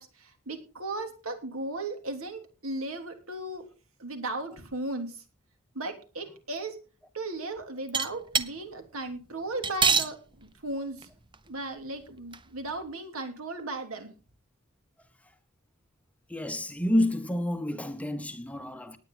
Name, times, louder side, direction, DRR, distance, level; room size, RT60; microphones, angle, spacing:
voice 1, 0.0-3.7 4.0-5.2 5.7-6.8 7.1-11.1 11.5-14.1, right 2 dB, 70° right, 3.1 m, -36 dB
sound 1, 7.9-8.5 9.6-10.1 11.0-11.1 11.3-11.4 12.3-12.4, right 5 dB, 20° right, 0.7 m, -24 dB
voice 2, 16.3-19.0, left 1 dB, 5° left, 0.9 m, -29 dB
19.0 x 9.2 x 4.0 m
head